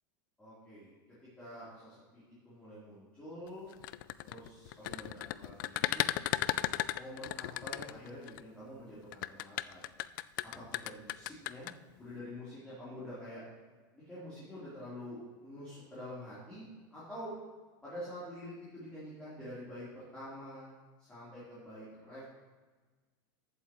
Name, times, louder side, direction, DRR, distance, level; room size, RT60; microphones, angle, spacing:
voice 1, 0.4-0.9 1.4-3.7 4.2-6.1 7.0-9.8 10.4-11.7 12.0-13.4 13.9-16.7 16.9-17.3 17.8-22.2, left 1 dB, 10° left, -11 dB, 3.7 m, -47 dB
sound 1, 3.7-8.4 9.1-11.7, left 16 dB, 65° left, 0.4 m, -35 dB
14.0 x 8.6 x 3.1 m, 1.3 s
supercardioid pair, 155°, 11 cm